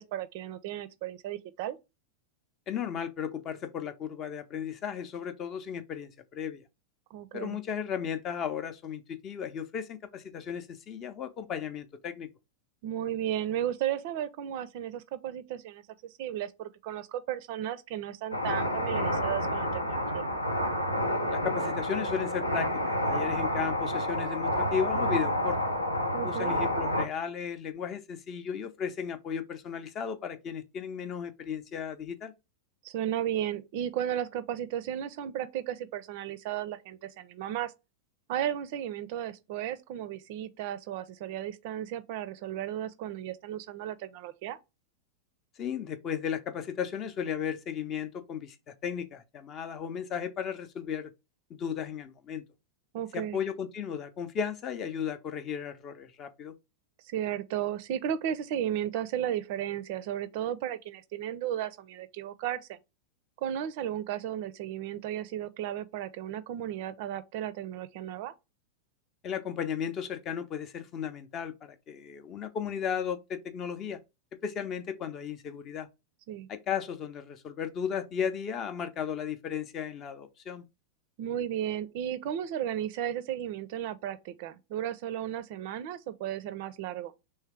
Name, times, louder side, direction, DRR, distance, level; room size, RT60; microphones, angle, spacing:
voice 1, 0.0-1.8 7.1-7.6 12.8-20.3 26.1-26.6 32.8-37.7 38.3-44.6 52.9-53.4 57.0-62.8 63.4-68.3 76.3-76.5 81.2-87.1, right 11 dB, 50° right, 0.4 m, -34 dB
voice 2, 2.7-6.6 7.3-12.3 21.3-25.6 26.2-32.3 45.6-51.1 51.6-52.4 53.1-56.5 69.2-74.0 74.4-75.9 76.5-80.6, left 7 dB, 30° left, 0.6 m, -35 dB
sound 1, 18.3-27.0, left 1 dB, 85° left, 0.7 m, -29 dB
3.2 x 3.2 x 4.6 m
figure-of-eight pair, 90°, 0 cm